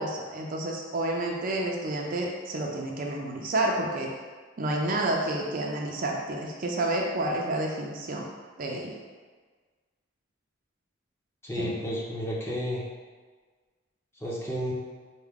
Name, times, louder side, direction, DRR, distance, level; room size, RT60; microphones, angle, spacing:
voice 1, 0.0-4.1 4.6-8.3 8.6-8.9 11.6-11.7, right 1 dB, 45° right, -1 dB, 0.4 m, -29 dB
voice 2, 11.4-12.8 14.2-14.7, equal, 10° left, -5 dB, 0.6 m, -31 dB
4.6 x 2.1 x 3.5 m, 1.4 s
head